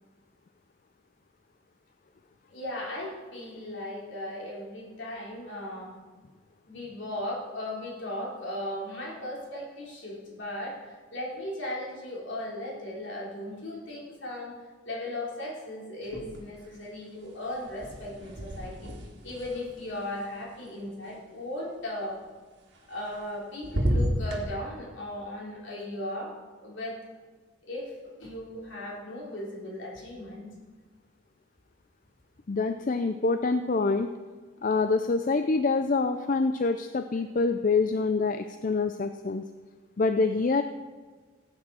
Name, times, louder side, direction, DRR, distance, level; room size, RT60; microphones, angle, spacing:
voice 1, 2.5-5.9 6.7-14.5 14.9-18.9 19.2-22.2 22.9-26.3 26.6-27.0 27.6-27.9 28.2-30.5, left 1 dB, 60° left, -4 dB, 3.8 m, -37 dB
sound 1, 16.0-16.7 17.0-21.1 22.7-23.4 23.6-24.4, equal, 55° right, 2.1 m, -33 dB
voice 2, 32.5-34.1 34.6-39.4 40.0-40.6, left 4 dB, 40° left, 8 dB, 0.4 m, -26 dB
16.5 x 8.7 x 4.2 m, 1.4 s
head